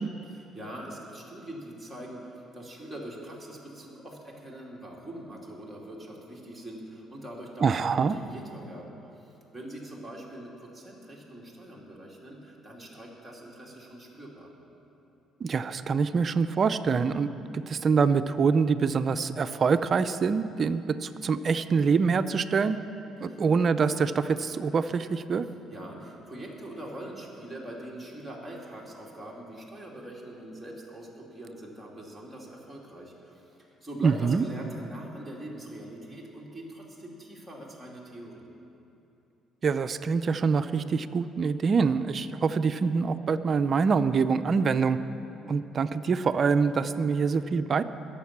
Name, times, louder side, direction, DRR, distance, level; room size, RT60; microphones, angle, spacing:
voice 1, 0.2-14.5 23.3-23.4 25.5-38.5, right 1 dB, 5° right, -4 dB, 2.7 m, -43 dB
voice 2, 7.6-8.1 15.4-22.8 23.2-25.5 34.0-34.4 39.6-45.0 45.4-47.8, right 5 dB, 40° right, 12 dB, 0.5 m, -25 dB
21.0 x 7.3 x 6.0 m, 2.8 s
cardioid pair, 110°, 0 cm